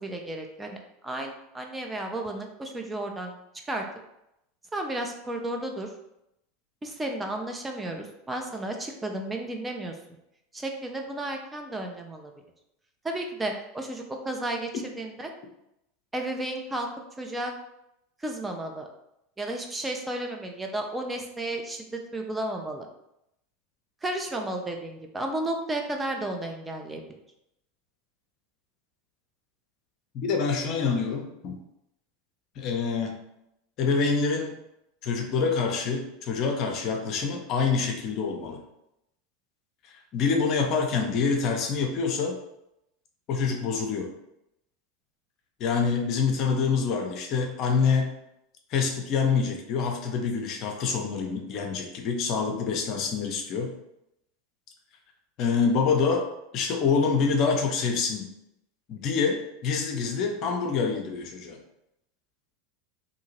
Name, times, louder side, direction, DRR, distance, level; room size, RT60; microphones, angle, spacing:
voice 1, 0.0-3.3 3.7-3.8 4.7-5.9 6.8-9.9 10.5-12.3 13.0-14.7 15.0-15.3 16.1-16.9 17.2-17.5 18.2-18.9 19.4-22.9 24.0-27.0, right 1 dB, 15° right, 2 dB, 0.4 m, -33 dB
voice 2, 30.1-31.6 32.6-33.2 33.8-34.5 35.0-38.6 40.1-42.4 43.3-44.1 45.6-48.1 48.7-53.7 55.4-56.3 56.5-58.3 58.9-61.6, left 5 dB, 50° left, 3 dB, 0.5 m, -26 dB
2.7 x 2.7 x 2.8 m, 0.83 s
hypercardioid pair, 85°, 0 cm